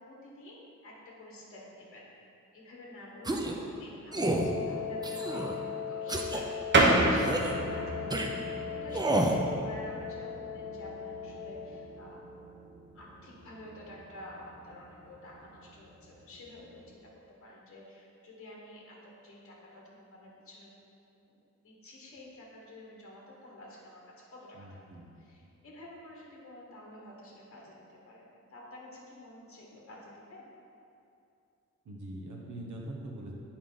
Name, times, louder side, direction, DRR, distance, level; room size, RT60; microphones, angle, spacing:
voice 1, 0.0-6.5 7.0-12.3 12.9-17.1 17.4-20.7 21.1-21.4 21.6-24.8 25.2-28.2 28.5-30.5, left 1 dB, 50° left, -3 dB, 1.2 m, -49 dB
sound 1, 3.2-3.6 4.1-4.5 5.0-5.6 6.1-6.4 7.2-7.5 8.1-8.3 8.9-9.4, right 1 dB, 15° right, 0.4 m, -29 dB
Wind instrument woodwind instrument, 4.2-12.1, left 7 dB, 70° left, 0.7 m, -39 dB
sound 2, 6.7-16.9, right 2 dB, 40° right, 0.8 m, -33 dB
voice 2, 24.5-25.1 31.8-33.3, right 1 dB, 80° right, -1 dB, 1.1 m, -42 dB
8.7 x 4.7 x 3.8 m, 2.6 s
wide cardioid pair, 170°, 29 cm